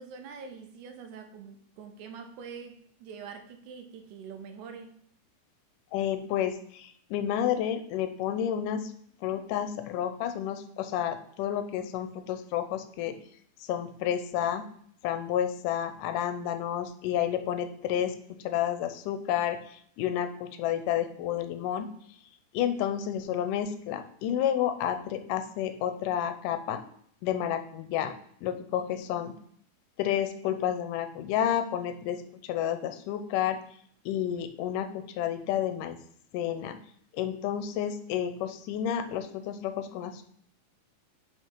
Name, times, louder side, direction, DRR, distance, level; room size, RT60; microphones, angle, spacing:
voice 1, 0.0-5.0, right 6 dB, 75° right, 6 dB, 2.0 m, -44 dB
voice 2, 5.9-8.9 9.2-13.2 13.7-14.7 15.0-18.2 18.4-21.9 22.5-26.8 27.2-28.1 28.4-29.3 30.0-33.6 34.1-36.0 36.3-36.8 37.1-40.2, left 10 dB, 85° left, 9 dB, 2.2 m, -30 dB
5.7 x 5.5 x 4.5 m, 0.63 s
omnidirectional pair, 3.7 m